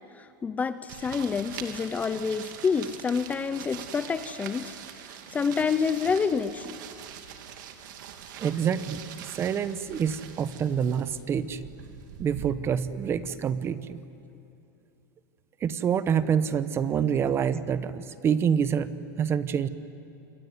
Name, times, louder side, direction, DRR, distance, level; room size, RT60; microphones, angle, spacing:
voice 1, 0.2-4.7 5.3-6.8, left 5 dB, 15° left, 13 dB, 0.6 m, -28 dB
sound 1, 0.9-12.5, right 9 dB, 75° right, 2.6 m, -43 dB
voice 2, 8.4-11.6 12.2-14.0 15.6-19.7, right 7 dB, 25° right, 14 dB, 0.9 m, -27 dB
27.5 x 22.5 x 9.5 m, 2.8 s
supercardioid pair, 155°, 11 cm